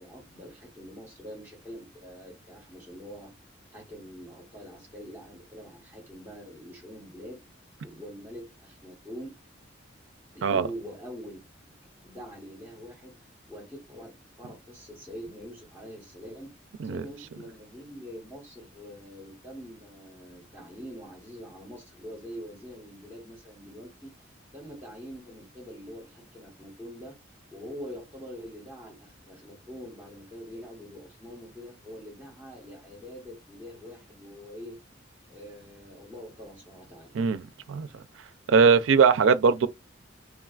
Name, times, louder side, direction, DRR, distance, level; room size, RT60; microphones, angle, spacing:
voice 1, 0.0-3.3 3.7-7.4 7.8-9.3 10.3-11.4 11.7-11.8 12.0-16.5 16.8-27.2 27.5-34.8 35.3-37.1, equal, 15° right, 1.0 m, -44 dB
voice 2, 37.1-37.9 38.5-39.7, right 5 dB, 85° right, 0.4 m, -21 dB
3.6 x 2.3 x 2.4 m
head